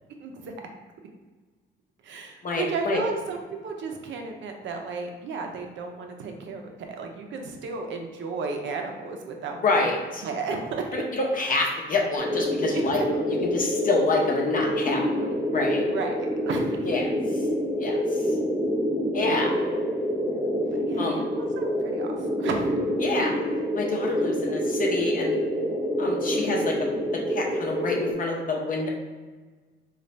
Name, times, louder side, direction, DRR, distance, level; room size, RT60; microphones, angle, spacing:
voice 1, 0.2-0.5 2.0-9.9 10.2-11.0 15.8-16.8 19.4-19.5 20.8-22.7, right 4 dB, 70° right, 3 dB, 0.6 m, -33 dB
voice 2, 2.4-3.0 9.6-10.2 10.9-15.9 16.8-17.1 17.8-18.4 19.1-19.5 21.0-21.2 23.0-23.3 23.7-25.4 26.0-26.9 27.3-28.9, left 3 dB, 45° left, 0 dB, 0.8 m, -27 dB
sound 1, 12.2-28.1, equal, ahead, 0.6 m, -27 dB
3.9 x 2.4 x 3.2 m, 1.4 s
cardioid pair, 90°, 20 cm